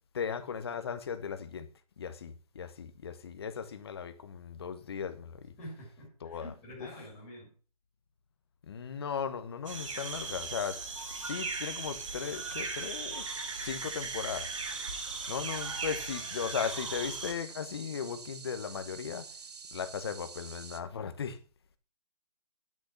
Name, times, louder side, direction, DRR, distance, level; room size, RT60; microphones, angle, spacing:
voice 1, 0.1-1.7 2.0-5.5 6.2-6.5 8.7-13.4 13.6-14.5 15.3-19.3 19.7-21.4, left 7 dB, 40° left, 1.1 m, -37 dB
voice 2, 5.6-7.5, equal, 10° left, 3.2 m, -47 dB
sound 1, 9.7-17.3, right 4 dB, 50° right, 2.3 m, -38 dB
sound 2, 13.2-20.8, right 5 dB, 75° right, 1.3 m, -48 dB
11.0 x 6.7 x 5.7 m
hypercardioid pair, 170°, 20 cm